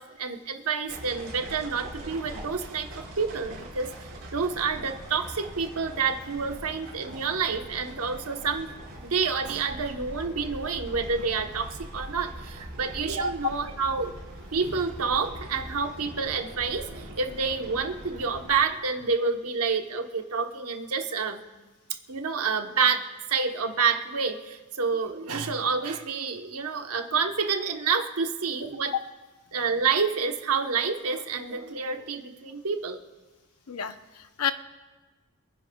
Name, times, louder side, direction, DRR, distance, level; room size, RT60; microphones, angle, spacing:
voice 1, 0.0-8.7 9.0-14.1 14.5-21.4 22.1-28.9 29.5-33.0, right 5 dB, 85° right, 5 dB, 1.0 m, -28 dB
sound 1, 0.9-18.6, right 1 dB, 65° right, 4.2 m, -42 dB
voice 2, 33.7-34.5, left 8 dB, 90° left, 9 dB, 0.7 m, -30 dB
27.0 x 10.5 x 2.3 m, 1.3 s
head